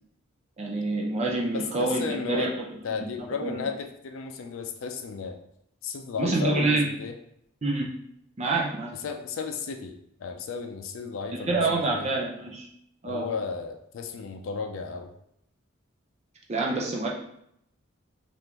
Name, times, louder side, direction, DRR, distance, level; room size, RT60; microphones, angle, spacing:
voice 1, 0.6-3.1 3.4-3.6 6.2-6.9 7.6-7.9 8.4-8.9 11.5-12.7 13.0-13.3 16.5-17.1, right 2 dB, 35° right, -2 dB, 0.5 m, -27 dB
voice 2, 1.5-2.5 2.8-5.4 5.8-7.1 9.0-12.1 13.1-15.1, left 5 dB, 85° left, 4 dB, 0.4 m, -34 dB
3.5 x 2.5 x 2.9 m, 0.73 s
head